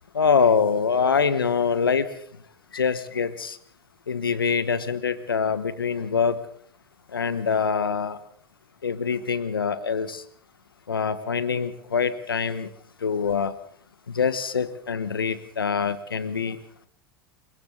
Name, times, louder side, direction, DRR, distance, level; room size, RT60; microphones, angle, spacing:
voice 1, 0.1-2.1 2.7-3.6 4.1-6.4 7.1-8.2 8.8-10.2 10.9-12.7 13.0-13.5 14.1-16.6, left 6 dB, 85° left, 14 dB, 1.3 m, -24 dB
28.0 x 23.0 x 4.0 m, 0.64 s
figure-of-eight pair, 85°, 12 cm